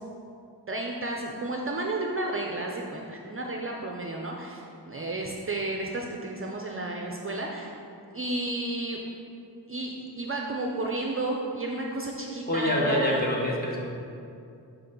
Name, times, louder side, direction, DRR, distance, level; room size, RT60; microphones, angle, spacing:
voice 1, 0.7-7.7 8.1-9.0 9.7-13.2, right 2 dB, 30° right, 0 dB, 0.5 m, -32 dB
voice 2, 12.5-13.8, left 1 dB, 20° left, -4 dB, 1.1 m, -26 dB
6.9 x 3.8 x 5.2 m, 2.6 s
wide cardioid pair, 135°, 41 cm